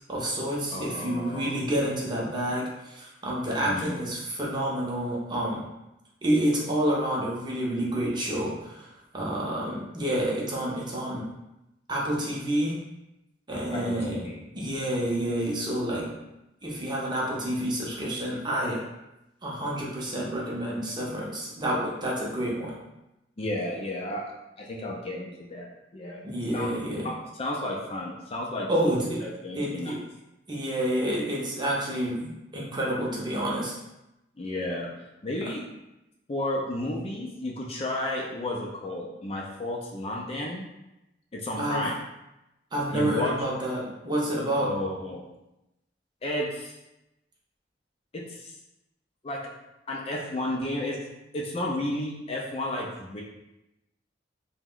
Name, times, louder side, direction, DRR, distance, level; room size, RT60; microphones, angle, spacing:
voice 1, 0.1-5.7 6.2-11.3 11.9-12.8 13.5-14.3 14.5-16.2 16.6-18.8 19.4-22.8 26.2-27.1 28.7-29.2 29.6-30.0 30.5-33.7 41.6-41.9 42.7-44.8, right 1 dB, 25° right, -4 dB, 0.6 m, -29 dB
voice 2, 0.7-1.6 3.6-4.0 13.7-14.4 23.4-24.3 24.6-25.7 25.9-26.2 26.5-26.7 27.0-29.9 34.4-34.9 35.2-35.6 36.3-40.7 41.3-41.9 42.9-43.3 44.6-45.3 46.2-46.8 48.1-48.6 49.2-49.5 49.9-51.0 51.3-53.2, left 1 dB, 35° left, -2 dB, 0.4 m, -32 dB
2.8 x 2.1 x 3.7 m, 0.93 s
head